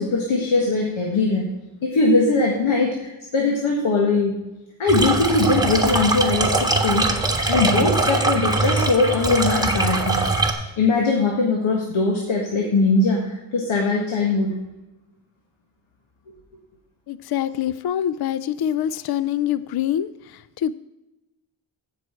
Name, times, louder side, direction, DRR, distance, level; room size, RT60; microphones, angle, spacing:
voice 1, 0.0-1.5 1.8-4.4 4.8-7.1 7.5-14.6, left 3 dB, 75° left, 0 dB, 1.8 m, -21 dB
sound 1, 4.9-10.5, right 2 dB, 10° right, 1.5 m, -22 dB
voice 2, 17.1-20.7, left 10 dB, 55° left, 16 dB, 0.5 m, -25 dB
15.0 x 6.1 x 4.5 m, 0.99 s
cardioid pair, 70°, 48 cm